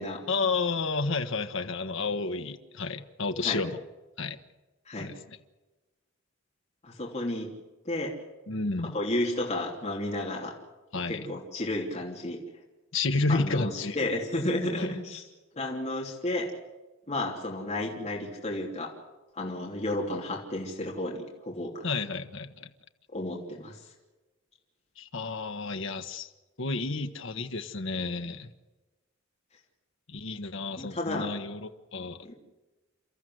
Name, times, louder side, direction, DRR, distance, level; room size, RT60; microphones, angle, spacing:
voice 1, 0.3-3.8 4.2-4.4 5.0-5.4 8.5-8.9 10.9-11.3 12.9-14.1 14.8-14.9 21.8-22.7 25.0-26.3 26.6-28.5 30.1-32.3, left 3 dB, 65° left, 7 dB, 1.2 m, -31 dB
voice 2, 6.8-7.5 7.8-8.1 8.9-10.5 11.1-12.4 13.3-15.3 15.5-16.5 17.1-18.9 19.3-21.8 23.1-23.8 30.8-31.3 32.2-32.3, left 1 dB, 35° left, -1 dB, 3.2 m, -32 dB
30.0 x 14.0 x 7.8 m, 1.1 s
head